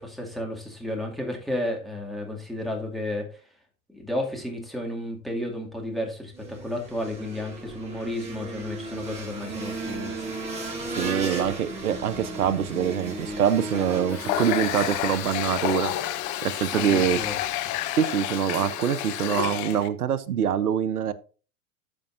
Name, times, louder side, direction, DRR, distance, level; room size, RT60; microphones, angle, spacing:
voice 1, 0.0-3.3 3.9-10.3 13.7-14.4 16.7-17.3, left 1 dB, ahead, 2.3 m, -32 dB
sound 1, 6.3-16.2, right 2 dB, 15° right, 4.4 m, -36 dB
voice 2, 10.9-15.9 16.4-17.2 18.0-21.1, right 9 dB, 85° right, 0.8 m, -25 dB
Water tap faucet, 14.1-19.9, left 13 dB, 40° left, 0.9 m, -29 dB
13.5 x 5.4 x 2.6 m
hypercardioid pair, 85°, 44 cm